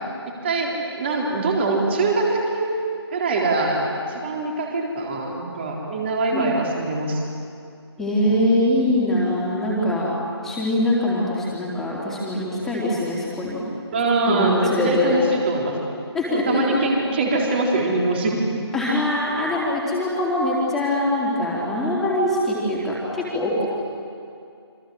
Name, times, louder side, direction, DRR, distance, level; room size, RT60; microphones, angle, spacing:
voice 1, 0.2-2.7 3.1-3.8 4.1-7.2 10.0-10.1 13.9-15.8 16.3-18.4, right 3 dB, 25° right, -1 dB, 4.1 m, -23 dB
voice 2, 8.0-10.1 10.4-13.7 14.3-15.2 16.1-16.8 18.7-23.6, left 1 dB, ahead, -7 dB, 3.8 m, -23 dB
28.0 x 26.0 x 7.9 m, 2.4 s
figure-of-eight pair, 155°, 14 cm